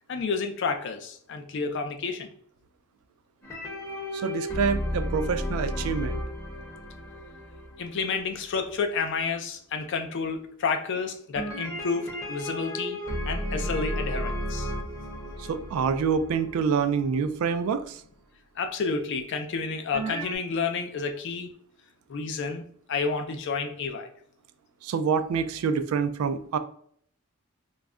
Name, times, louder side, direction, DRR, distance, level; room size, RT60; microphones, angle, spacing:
voice 1, 0.1-2.3 7.8-13.0 13.2-14.7 18.6-21.5 22.1-24.1, left 4 dB, 55° left, 5 dB, 0.4 m, -30 dB
sound 1, 3.4-8.7 11.4-17.3 19.9-20.4, equal, 15° left, 0.7 m, -33 dB
voice 2, 4.1-6.2 15.5-18.0 24.8-26.6, right 6 dB, 80° right, 11 dB, 0.3 m, -26 dB
2.3 x 2.1 x 3.5 m, 0.62 s
head